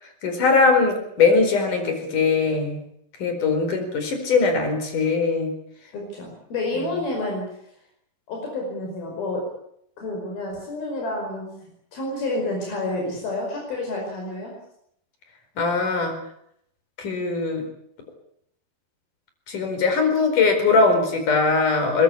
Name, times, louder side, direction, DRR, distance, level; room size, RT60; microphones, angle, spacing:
voice 1, 0.0-2.8 3.2-5.5 15.6-16.1 17.0-17.6 19.5-22.0, left 4 dB, 60° left, 6 dB, 6.0 m, -21 dB
voice 2, 5.9-7.4 8.3-9.4 10.0-11.5 11.9-14.5, left 2 dB, 85° left, 0 dB, 7.2 m, -29 dB
22.0 x 21.0 x 8.6 m, 0.73 s
omnidirectional pair, 4.2 m